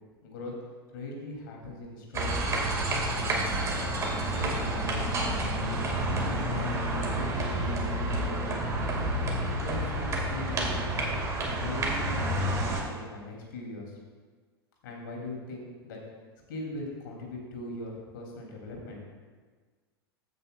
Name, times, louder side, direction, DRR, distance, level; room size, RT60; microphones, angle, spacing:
voice 1, 0.2-0.5 0.9-2.8 3.1-3.9 4.2-5.2 5.8-8.5 9.6-10.8 11.5-14.0 14.8-16.0 16.5-19.0, left 2 dB, 55° left, -1 dB, 2.7 m, -40 dB
sound 1, 2.1-12.8, right 1 dB, 20° right, 1.9 m, -29 dB
15.0 x 8.2 x 2.3 m, 1.5 s
figure-of-eight pair, 90°, 13 cm